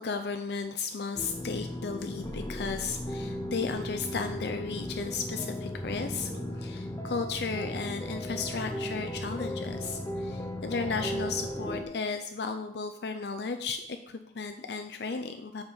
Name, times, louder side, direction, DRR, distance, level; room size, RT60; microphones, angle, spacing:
voice 1, 0.0-15.6, left 4 dB, 70° left, 6 dB, 0.5 m, -34 dB
sound 1, 1.2-11.8, equal, 15° left, 0.6 m, -36 dB
sound 2, 5.4-13.0, left 1 dB, 35° left, 1.6 m, -48 dB
7.2 x 5.1 x 5.4 m, 0.75 s
head